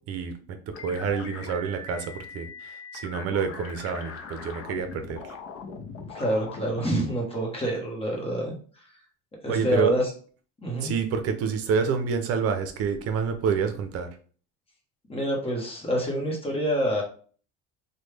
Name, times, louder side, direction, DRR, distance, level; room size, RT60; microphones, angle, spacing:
voice 1, 0.1-5.3 9.5-9.9 10.8-14.1, right 6 dB, 50° right, 7 dB, 0.7 m, -28 dB
sound 1, 0.7-6.8, left 4 dB, 45° left, 0.6 m, -41 dB
voice 2, 6.1-8.5 9.4-10.1 10.6-10.9 15.1-17.0, equal, 20° left, 0 dB, 1.0 m, -27 dB
3.2 x 2.3 x 3.2 m, 0.42 s
cardioid pair, 135°, 31 cm